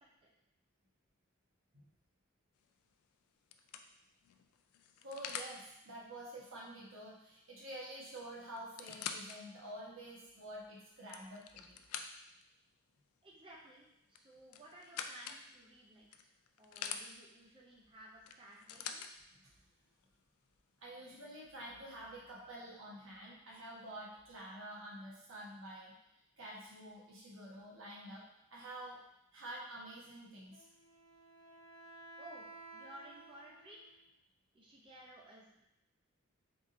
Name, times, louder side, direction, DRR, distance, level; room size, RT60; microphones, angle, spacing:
sound 1, 2.6-2.9 3.5-5.6 7.6-7.7 8.0-8.1 8.6-9.4 10.0-10.1 10.8-12.4 14.1-15.4 16.1-17.0 18.3-19.1 20.0-20.1, left 7 dB, 80° left, 0.3 m, -45 dB
voice 1, 5.0-11.8 20.8-25.9 26.4-28.2 28.5-29.0 29.3-30.7, right 1 dB, 60° right, -5 dB, 1.1 m, -49 dB
voice 2, 13.2-16.3 16.6-19.1 32.2-32.4 32.7-34.0 34.5-35.6, right 1 dB, 25° right, -3 dB, 0.5 m, -56 dB
Wind instrument woodwind instrument, 30.5-34.1, right 2 dB, 40° left, 1.1 m, -55 dB
3.9 x 3.6 x 2.5 m, 0.84 s
head